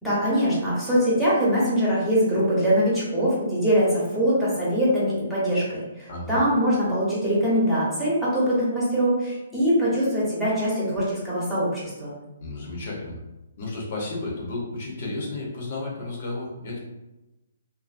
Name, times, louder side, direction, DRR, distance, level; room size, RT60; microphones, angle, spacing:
voice 1, 0.0-12.1, equal, 5° right, -9 dB, 1.0 m, -23 dB
voice 2, 6.1-6.4 12.4-13.2 13.6-16.8, left 2 dB, 55° left, -3 dB, 0.8 m, -32 dB
2.5 x 2.5 x 2.5 m, 1.0 s
hypercardioid pair, 150°, 0 cm